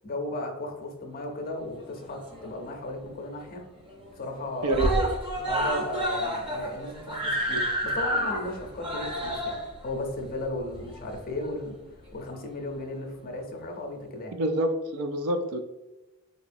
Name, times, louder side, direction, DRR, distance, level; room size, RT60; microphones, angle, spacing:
voice 1, 0.0-3.6 4.2-4.8 5.4-11.8 12.1-14.4, left 1 dB, 45° left, 2 dB, 0.6 m, -35 dB
Screaming, 1.8-2.7 3.1-3.2 3.5-3.6 3.9-4.4 4.7-11.5 12.3-12.4, equal, 25° right, 0.7 m, -30 dB
voice 2, 4.6-5.2 14.4-15.6, right 2 dB, 80° right, 7 dB, 0.4 m, -27 dB
3.9 x 2.9 x 2.5 m, 1.0 s
head